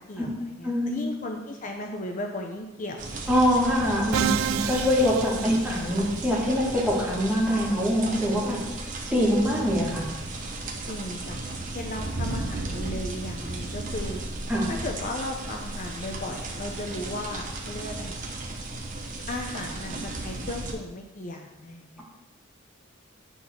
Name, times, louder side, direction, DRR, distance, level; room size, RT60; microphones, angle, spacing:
voice 1, 0.1-3.1 5.4-5.6 10.9-11.4 11.7-14.2 14.7-18.2 19.3-22.0, left 1 dB, 40° left, 2 dB, 0.7 m, -36 dB
voice 2, 0.6-1.0 3.3-8.6 9.1-10.1 14.5-14.7, equal, 5° right, -4 dB, 2.0 m, -24 dB
sound 1, 3.0-20.7, right 2 dB, 40° right, 1.1 m, -35 dB
Musical instrument, 4.1-6.2, right 9 dB, 85° right, 0.3 m, -29 dB
10.0 x 4.1 x 6.2 m, 1.1 s
head